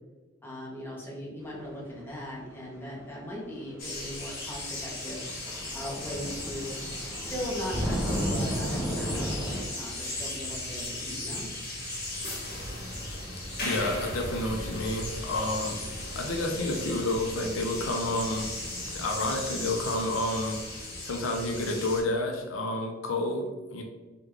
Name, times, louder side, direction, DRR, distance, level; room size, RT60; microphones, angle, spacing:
voice 1, 0.4-5.2 5.7-6.7 7.3-11.5, equal, 10° left, -5 dB, 0.8 m, -38 dB
sound 1, 3.5-3.6 4.8-4.9 5.1-9.6, equal, 15° right, 0.4 m, -33 dB
sound 2, 3.8-22.0, left 1 dB, 50° left, 1.0 m, -37 dB
voice 2, 13.6-15.8 16.1-18.5 18.8-23.8, left 1 dB, 75° left, 2 dB, 0.5 m, -30 dB
3.6 x 2.3 x 3.1 m, 1.2 s
head